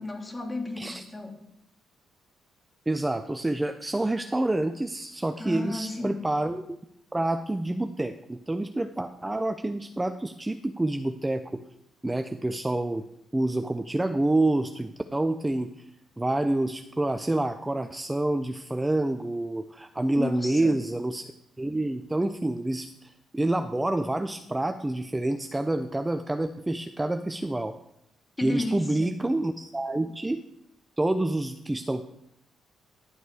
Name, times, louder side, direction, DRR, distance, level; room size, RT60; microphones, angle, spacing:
voice 1, 0.0-1.4 5.4-6.2 20.2-20.7 28.4-29.1, left 2 dB, 20° left, 2 dB, 2.4 m, -33 dB
voice 2, 2.9-6.6 7.1-11.6 12.0-13.0 13.3-15.9 16.2-21.2 21.6-27.8 28.4-30.4 31.0-32.0, right 2 dB, 15° right, 8 dB, 0.5 m, -28 dB
11.0 x 7.9 x 4.8 m, 0.77 s
cardioid pair, 90°, 0 cm